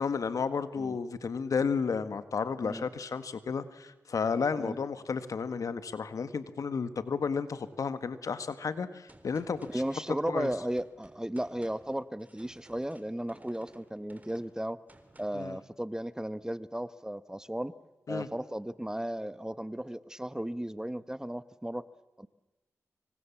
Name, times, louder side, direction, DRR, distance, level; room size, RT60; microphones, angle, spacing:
voice 1, 0.0-9.8 10.3-10.5 15.3-15.6 18.1-18.3, left 5 dB, 75° left, 12 dB, 1.7 m, -32 dB
Gunshot gunfire, 9.1-15.6, right 2 dB, 25° right, 3.8 m, -58 dB
voice 2, 9.7-14.8 15.2-17.7 18.1-21.8 22.2-22.3, right 1 dB, 10° right, 15 dB, 1.1 m, -35 dB
26.0 x 25.0 x 7.3 m, 1.1 s
cardioid pair, 50°, 6 cm